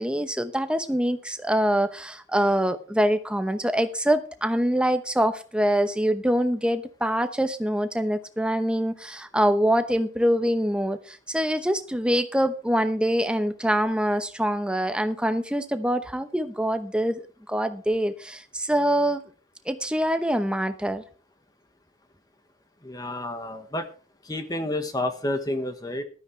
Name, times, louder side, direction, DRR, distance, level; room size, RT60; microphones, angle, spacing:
voice 1, 0.0-19.2 19.7-21.0, equal, 5° right, 9 dB, 0.9 m, -24 dB
voice 2, 22.8-23.9 24.2-26.0, left 1 dB, 20° left, 8 dB, 1.2 m, -30 dB
15.0 x 12.5 x 3.3 m, 0.37 s
head